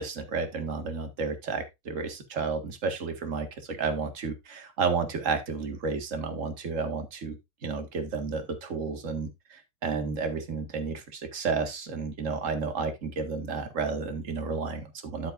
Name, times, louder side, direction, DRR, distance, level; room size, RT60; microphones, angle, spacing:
voice 1, 0.0-7.4 7.6-15.3, right 4 dB, 35° right, 6 dB, 1.9 m, -31 dB
12.0 x 7.5 x 2.5 m, 0.21 s
omnidirectional pair, 2.4 m